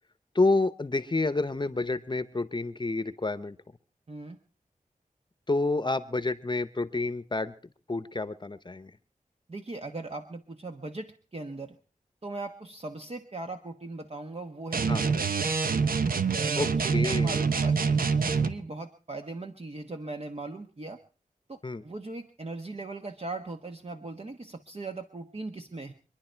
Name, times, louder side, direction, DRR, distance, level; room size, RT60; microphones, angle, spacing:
voice 1, 0.3-3.6 5.5-7.5 7.9-8.9 14.9-15.0 16.6-17.4 21.6-21.8, left 3 dB, 30° left, 13 dB, 0.8 m, -29 dB
voice 2, 4.1-4.4 9.5-11.8 12.2-15.2 16.4-21.0 21.5-25.9, right 2 dB, 45° right, 5 dB, 1.1 m, -39 dB
sound 1, 14.7-18.6, right 5 dB, 90° right, 0.9 m, -26 dB
25.5 x 10.5 x 4.5 m, 0.39 s
wide cardioid pair, 65°, 14 cm